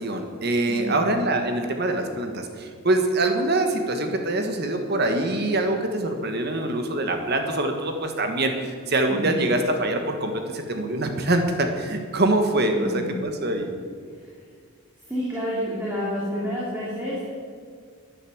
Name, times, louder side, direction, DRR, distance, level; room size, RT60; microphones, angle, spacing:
voice 1, 0.0-13.7, right 2 dB, 45° right, 5 dB, 1.5 m, -24 dB
voice 2, 0.7-1.0 9.1-9.4 12.7-13.1 15.1-17.3, equal, 10° right, -7 dB, 3.0 m, -29 dB
11.5 x 11.0 x 7.9 m, 2.1 s
head